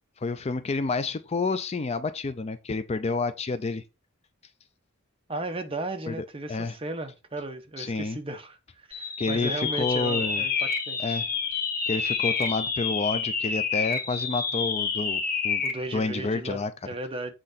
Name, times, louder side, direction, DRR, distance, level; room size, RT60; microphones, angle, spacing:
voice 1, 0.2-3.8 6.1-6.8 7.8-8.2 9.2-10.4 11.0-11.3 11.9-15.6 15.9-16.7, left 3 dB, 30° left, 0.4 m, -29 dB
voice 2, 5.3-11.2 15.6-17.3, right 2 dB, 25° right, 0.9 m, -35 dB
sound 1, 8.9-15.8, left 5 dB, 45° left, 2.2 m, -28 dB
7.6 x 3.8 x 4.0 m
head